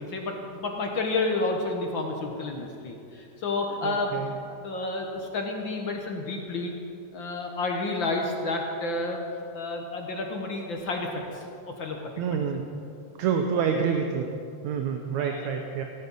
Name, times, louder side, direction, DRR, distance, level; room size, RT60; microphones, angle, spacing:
voice 1, 0.0-4.2 4.6-6.7 7.1-9.2 9.5-11.5 11.8-12.0 12.3-12.5 13.5-13.7 15.1-15.6, left 2 dB, 55° left, 2 dB, 1.5 m, -30 dB
voice 2, 3.8-4.3 12.2-12.7 13.2-14.3 14.6-15.8, right 6 dB, 75° right, 4 dB, 2.1 m, -27 dB
16.5 x 13.0 x 5.5 m, 2.5 s
omnidirectional pair, 3.4 m